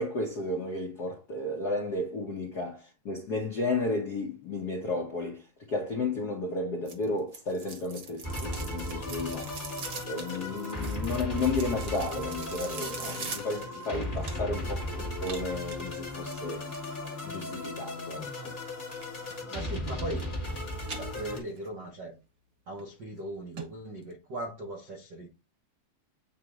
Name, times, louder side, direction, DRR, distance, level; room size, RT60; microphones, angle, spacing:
voice 1, 0.0-5.4 5.7-9.5 10.1-16.6 17.2-18.5, left 2 dB, 80° left, 0.9 m, -33 dB
sound 1, 6.9-14.7 15.2-17.0 18.9-19.4 19.7-20.5 20.8-21.7 22.1-22.2 22.8-22.9 23.2-23.3 23.6-23.7 24.0-24.1, right 5 dB, 55° right, 1.3 m, -43 dB
sound 2, 8.2-21.4, left 1 dB, 40° left, 0.7 m, -36 dB
voice 2, 14.6-15.1 19.5-20.3 20.9-22.1 22.7-25.3, right 1 dB, 75° right, 0.9 m, -39 dB
8.2 x 3.1 x 3.7 m
omnidirectional pair, 3.6 m